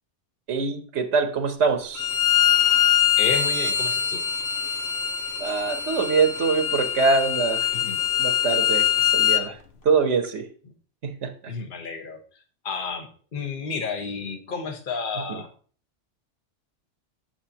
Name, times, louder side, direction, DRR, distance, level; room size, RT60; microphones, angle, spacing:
voice 1, 0.5-2.1 5.4-7.7 8.2-9.6 9.8-10.5 11.0-11.5 15.3-15.4, right 5 dB, 75° right, 6 dB, 1.2 m, -24 dB
Bowed string instrument, 2.0-9.4, left 10 dB, 65° left, 1.0 m, -23 dB
voice 2, 3.2-4.2 7.7-8.0 11.5-12.2 12.6-15.5, left 5 dB, 45° left, 5 dB, 1.3 m, -31 dB
8.9 x 6.8 x 2.8 m, 0.41 s
omnidirectional pair, 1.2 m